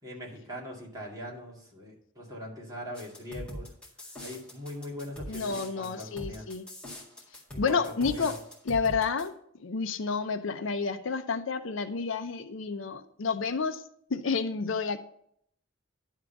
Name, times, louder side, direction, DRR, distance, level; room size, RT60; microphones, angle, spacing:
voice 1, 0.0-3.7 4.2-6.5 7.5-8.3, equal, 20° right, -4 dB, 2.3 m, -41 dB
sound 1, 2.9-9.3, equal, 5° left, 2.0 m, -42 dB
voice 2, 5.3-6.7 7.6-8.4 8.6-9.3 9.6-13.8 14.1-15.0, left 5 dB, 65° left, 9 dB, 0.6 m, -30 dB
11.0 x 3.7 x 7.0 m, 0.68 s
head